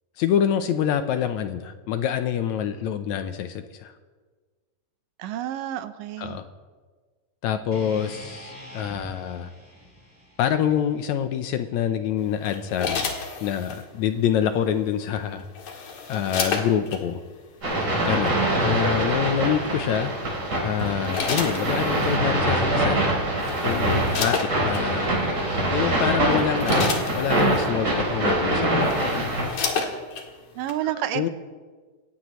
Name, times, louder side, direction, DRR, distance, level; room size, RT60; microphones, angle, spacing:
voice 1, 0.2-3.9 6.2-6.4 7.4-9.5 10.4-13.1 13.4-15.4 16.1-17.2 18.1-20.1 20.6-23.0 23.6-25.1 25.7-26.9 27.2-29.0 30.9-31.3, left 9 dB, 75° left, 9 dB, 1.8 m, -26 dB
voice 2, 5.2-6.4 30.6-31.3, right 12 dB, 85° right, 11 dB, 2.4 m, -29 dB
sound 1, 7.7-11.9, left 1 dB, 5° right, 4.4 m, -45 dB
sound 2, 12.4-13.8 15.1-17.0 18.0-18.3 20.0-20.3 20.8-22.2 23.0-23.1 23.4-24.8 25.6-25.7 26.2-27.7 28.4-28.5 28.7-30.3 30.7-30.8, left 5 dB, 55° left, 2.5 m, -31 dB
sound 3, 17.6-29.5, right 1 dB, 35° right, 4.7 m, -24 dB
27.5 x 15.0 x 3.1 m, 1.4 s
omnidirectional pair, 3.8 m